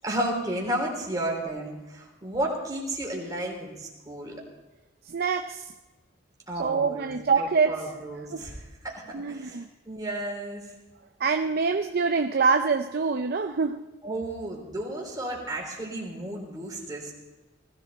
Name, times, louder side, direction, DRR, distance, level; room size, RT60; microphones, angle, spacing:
voice 1, 0.0-4.4 6.5-7.1 7.4-10.6 14.0-17.1, right 1 dB, 20° right, -1 dB, 3.6 m, -33 dB
voice 2, 5.1-5.7 6.6-7.8 8.3-8.4 9.1-9.7 11.2-13.8, right 5 dB, 55° right, 7 dB, 0.6 m, -25 dB
19.5 x 15.0 x 4.1 m, 1.1 s
head